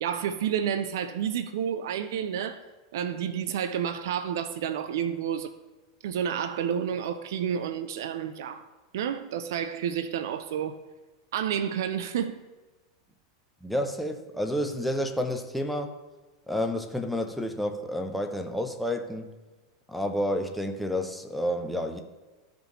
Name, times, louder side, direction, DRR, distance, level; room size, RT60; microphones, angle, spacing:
voice 1, 0.0-2.6 2.9-5.5 6.0-8.6 8.9-10.8 11.3-12.4, right 8 dB, 60° right, 0.5 m, -30 dB
voice 2, 13.6-15.9 16.5-19.3 19.9-22.0, equal, ahead, 0.8 m, -30 dB
14.5 x 5.1 x 3.1 m
figure-of-eight pair, 90°, 2 cm